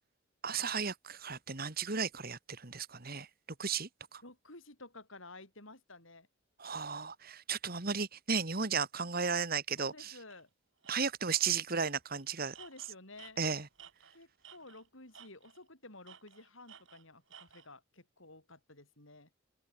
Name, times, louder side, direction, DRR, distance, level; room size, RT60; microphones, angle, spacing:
voice 1, 0.4-3.3 3.6-4.2 6.6-10.1 10.9-12.5 13.4-13.7, right 5 dB, 45° right, 2.1 m, -34 dB
voice 2, 4.2-6.3 9.8-10.5 12.6-13.4 14.1-19.3, left 2 dB, 65° left, 7.5 m, -53 dB
Tools, 10.3-10.4 10.8-10.9 11.3-11.5 11.8-14.9 15.1-15.7 16.0-17.7, right 8 dB, 60° right, 5.3 m, -56 dB
open air
head